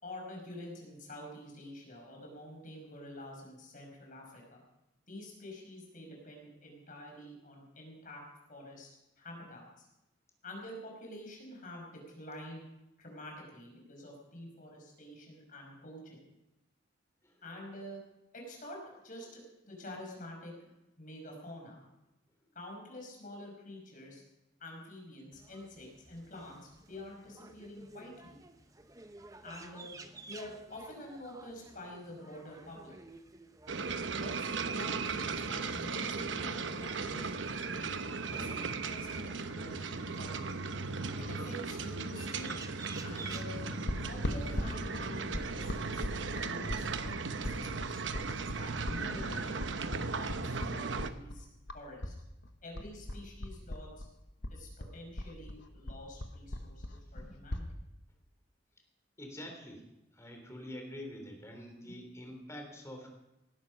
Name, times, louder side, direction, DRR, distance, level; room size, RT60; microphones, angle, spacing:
voice 1, 0.0-4.6 5.1-8.2 8.5-8.9 9.2-9.9 10.4-12.6 13.0-16.2 17.4-18.0 18.3-18.8 19.0-20.5 21.0-21.8 22.6-24.2 24.6-28.4 29.4-29.9 30.3-32.9 34.2-37.9 38.3-40.5 41.2-42.6 43.0-43.6 44.1-46.1 46.4-51.5 51.7-52.1 52.6-54.1 54.5-57.6 61.8-61.9, left 1 dB, 45° left, 0 dB, 5.4 m, -48 dB
sound 1, 25.3-44.7, right 3 dB, 20° right, 0.9 m, -54 dB
sound 2, 33.7-51.1, right 4 dB, 80° right, 1.0 m, -37 dB
sound 3, 43.9-52.2 52.4-54.1 54.4-57.7, left 1 dB, 75° left, 1.3 m, -38 dB
voice 2, 59.2-59.8 60.1-63.1, left 1 dB, 15° left, 3 dB, 3.4 m, -46 dB
18.5 x 12.0 x 5.3 m, 0.91 s
head